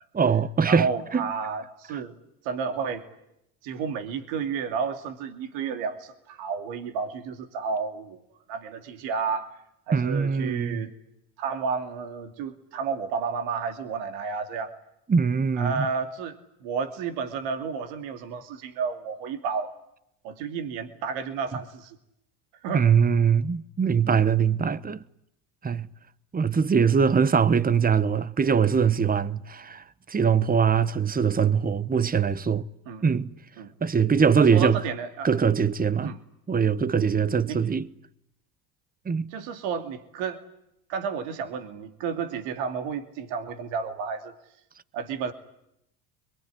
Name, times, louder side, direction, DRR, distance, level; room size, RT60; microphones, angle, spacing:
voice 1, 0.1-0.9 1.1-1.3 9.9-10.9 15.1-15.9 22.7-25.0 25.6-25.9 26.3-32.7 33.0-33.3 33.8-34.8 35.2-36.1 36.5-37.9 39.0-39.3, right 6 dB, 20° right, 1.1 m, -22 dB
voice 2, 0.6-2.2 2.4-3.1 3.6-8.2 8.5-9.5 9.9-10.9 11.4-14.7 15.5-19.7 20.2-22.0 22.6-22.9 32.9-33.0 33.6-33.7 34.4-35.3 36.0-36.2 37.5-37.6 39.3-40.4 40.9-44.3 44.9-45.3, right 5 dB, 65° right, 2.7 m, -31 dB
26.5 x 22.5 x 10.0 m
hypercardioid pair, 75°, 48 cm